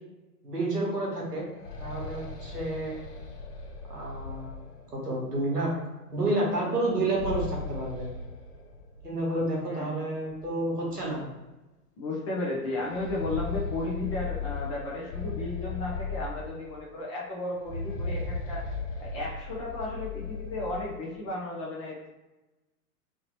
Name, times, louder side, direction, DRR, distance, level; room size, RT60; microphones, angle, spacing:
voice 1, 0.4-1.5 1.8-3.0 3.9-4.6 4.9-5.7 6.1-8.1 9.0-11.3, right 2 dB, 90° right, -2 dB, 1.1 m, -30 dB
sound 1, 1.4-5.1 6.9-9.1 9.4-9.5 10.4-10.5 10.9-11.1 12.7-16.9 17.5-20.9, left 4 dB, 85° left, 0.8 m, -37 dB
voice 2, 12.0-18.6 19.0-22.1, left 2 dB, 25° left, -4 dB, 0.3 m, -34 dB
2.9 x 2.8 x 2.9 m, 1.1 s
figure-of-eight pair, 100°, 46 cm